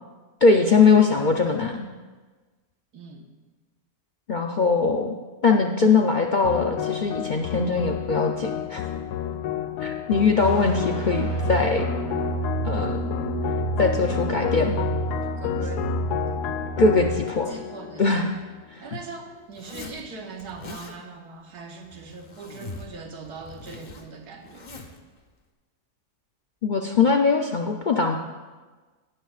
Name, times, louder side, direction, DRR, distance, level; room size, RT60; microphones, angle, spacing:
voice 1, 0.4-1.9 4.3-5.2 5.4-8.8 9.8-11.9 12.6-13.0 13.8-14.9 16.8-17.5 18.0-18.3 18.7-18.8 26.6-28.2, left 4 dB, 70° left, 2 dB, 0.4 m, -21 dB
voice 2, 2.9-3.3 15.2-15.8 17.5-18.1 18.8-24.7, right 4 dB, 80° right, 2 dB, 1.8 m, -40 dB
sound 1, 6.4-18.9, left 11 dB, 85° left, 1.1 m, -31 dB
sound 2, 10.4-17.2, right 4 dB, 55° right, 4.2 m, -30 dB
Zipper (clothing), 19.5-20.0 20.4-21.0 21.8-23.0 23.2-25.0, left 3 dB, 35° left, 0.9 m, -42 dB
16.5 x 12.0 x 2.4 m, 1.3 s
omnidirectional pair, 1.7 m